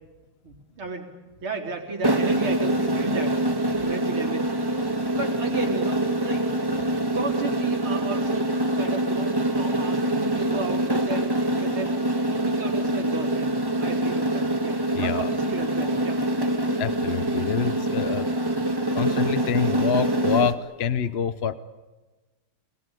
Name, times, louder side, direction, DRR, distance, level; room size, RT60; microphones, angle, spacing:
voice 1, 0.4-1.1 1.4-3.4 3.8-4.8 5.1-6.5 7.1-8.5 8.7-11.9 12.3-13.5 13.8-16.2, right 3 dB, 85° right, 2 dB, 4.8 m, -33 dB
sound 1, 2.0-20.5, right 1 dB, 15° right, 1.4 m, -25 dB
voice 2, 14.9-15.3 16.8-18.3 18.9-21.5, left 7 dB, 50° left, 13 dB, 0.7 m, -26 dB
27.0 x 20.0 x 9.1 m, 1.2 s
omnidirectional pair, 2.2 m